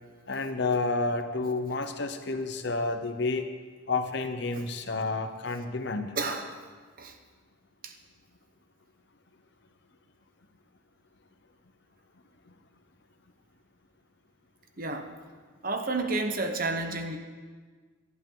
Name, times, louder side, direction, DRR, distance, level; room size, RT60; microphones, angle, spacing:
voice 1, 0.3-3.5 3.9-6.2 12.5-12.6, left 3 dB, 55° left, 7 dB, 0.9 m, -30 dB
voice 2, 6.1-6.5 7.0-7.2 7.8-7.9 14.8-15.2 15.6-17.2, right 3 dB, 45° right, 5 dB, 1.1 m, -31 dB
18.5 x 11.5 x 3.9 m, 1.5 s
head